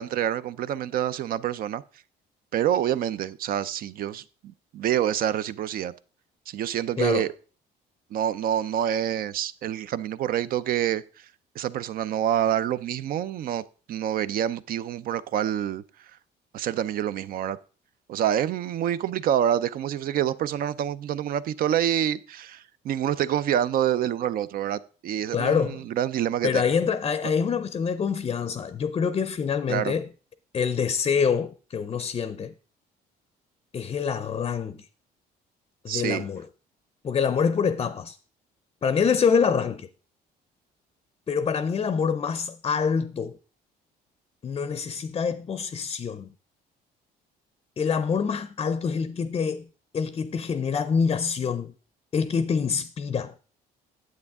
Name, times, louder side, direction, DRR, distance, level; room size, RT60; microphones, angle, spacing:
voice 1, 0.0-1.8 2.5-5.9 6.5-7.3 8.1-11.3 11.6-15.8 16.5-17.6 18.1-26.7 29.7-29.9 35.9-36.3, right 10 dB, 60° right, 0.5 m, -27 dB
voice 2, 25.3-25.8 26.4-30.1 30.5-32.5 33.7-34.8 35.8-36.4 37.0-38.2 38.8-39.9 41.3-43.4 44.4-46.3 47.8-49.7 49.9-51.7 52.1-53.3, left 6 dB, 30° left, 0.5 m, -26 dB
9.6 x 7.8 x 3.6 m
cardioid pair, 110°, 17 cm